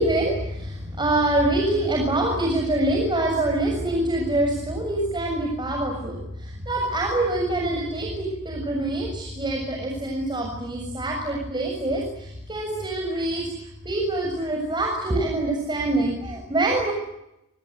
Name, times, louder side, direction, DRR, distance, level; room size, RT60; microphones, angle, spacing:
voice 1, 0.0-13.5 13.9-16.9, right 1 dB, 20° right, 1 dB, 7.1 m, -25 dB
28.5 x 25.5 x 8.2 m, 0.86 s
head